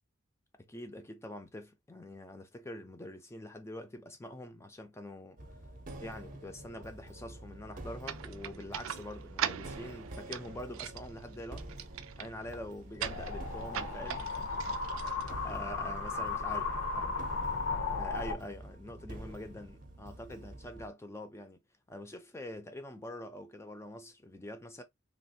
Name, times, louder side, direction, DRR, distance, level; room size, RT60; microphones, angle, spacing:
voice 1, 0.6-5.4 6.0-11.7 12.2-15.0 15.3-17.4 17.9-21.6 21.9-24.8, left 1 dB, 15° left, 0.4 m, -45 dB
sound 1, 5.4-20.9, right 1 dB, 40° right, 0.6 m, -48 dB
sound 2, 8.0-15.9, right 9 dB, 80° right, 0.4 m, -41 dB
sound 3, 13.0-18.3, left 3 dB, 80° left, 0.8 m, -35 dB
3.2 x 2.4 x 2.7 m
head